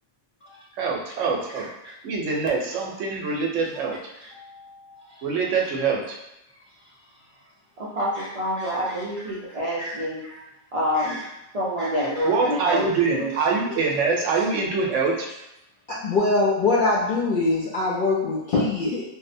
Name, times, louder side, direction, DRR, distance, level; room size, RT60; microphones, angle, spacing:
voice 1, 0.8-1.7 2.0-4.0 5.2-6.2 12.2-15.3, right 4 dB, 75° right, -1 dB, 0.9 m, -24 dB
voice 2, 1.5-1.9 3.1-3.2 4.3-5.0 8.2-8.3 8.6-9.3 9.8-10.4 10.9-11.3 11.8-12.3 12.7-12.8 15.9-19.0, left 3 dB, 65° left, -7 dB, 0.5 m, -25 dB
voice 3, 7.8-10.2 10.7-11.2 11.5-13.3, equal, 60° right, -8 dB, 0.3 m, -27 dB
2.6 x 2.0 x 2.5 m, 0.89 s
omnidirectional pair, 1.3 m